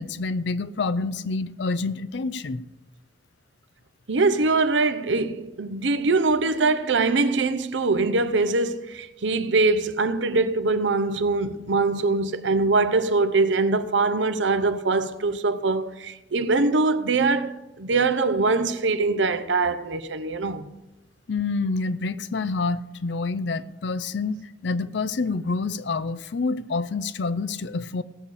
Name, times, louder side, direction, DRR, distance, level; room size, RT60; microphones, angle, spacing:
voice 1, 0.0-2.6 21.3-28.0, left 3 dB, 70° left, 0.5 m, -27 dB
voice 2, 4.1-20.7, right 3 dB, 85° right, 0.7 m, -23 dB
17.5 x 6.9 x 4.9 m
head